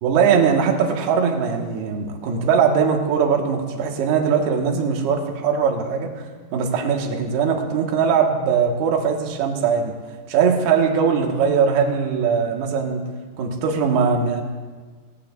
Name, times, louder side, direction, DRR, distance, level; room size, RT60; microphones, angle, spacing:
voice 1, 0.0-6.1 6.5-10.0 10.3-13.1 13.4-14.4, right 6 dB, 70° right, 2 dB, 3.1 m, -20 dB
21.5 x 17.5 x 2.4 m, 1.4 s
omnidirectional pair, 5.1 m